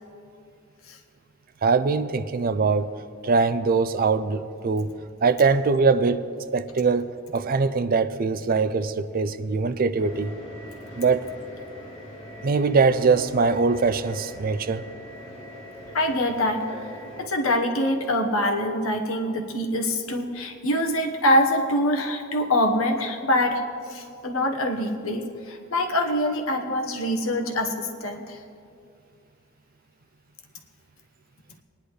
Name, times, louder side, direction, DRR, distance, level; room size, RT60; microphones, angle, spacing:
voice 1, 1.6-2.9 3.2-4.9 5.2-6.2 6.5-10.3 11.0-11.3 12.4-14.8, right 4 dB, 45° right, 0.4 m, -22 dB
sound 1, 9.9-17.2, equal, 40° left, 3.7 m, -41 dB
voice 2, 15.9-16.6 17.2-23.6 23.9-28.4, left 1 dB, 90° left, 1.2 m, -24 dB
20.0 x 10.5 x 3.2 m
head